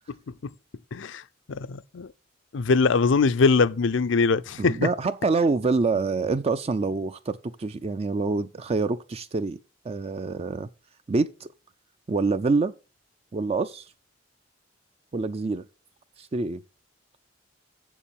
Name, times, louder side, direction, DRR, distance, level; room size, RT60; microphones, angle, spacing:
voice 1, 0.9-1.2 1.5-2.1 2.5-4.8, left 4 dB, 75° left, 0.5 m, -22 dB
voice 2, 4.6-9.6 9.8-10.7 11.1-11.5 12.1-12.7 13.3-13.9 15.1-15.6 16.2-16.6, right 3 dB, 30° right, 0.4 m, -26 dB
7.4 x 7.1 x 7.0 m
head